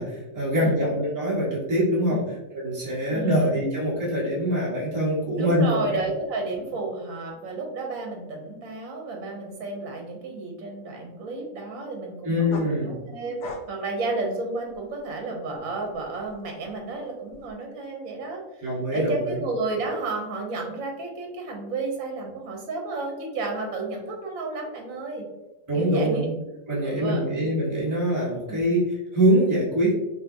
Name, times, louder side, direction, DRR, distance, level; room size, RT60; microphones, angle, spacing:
voice 1, 0.0-2.2 2.5-5.8 12.2-12.9 18.6-19.4 25.7-26.3 26.7-29.9, equal, 15° right, -8 dB, 1.2 m, -24 dB
voice 2, 3.1-3.4 5.4-25.3 25.7-26.3 26.8-27.3 28.5-28.6, right 3 dB, 75° right, 1 dB, 1.2 m, -32 dB
sound 1, 12.5-15.1 15.5-17.5, left 4 dB, 65° left, 0.8 m, -42 dB
5.2 x 2.1 x 2.7 m, 0.98 s
omnidirectional pair, 1.5 m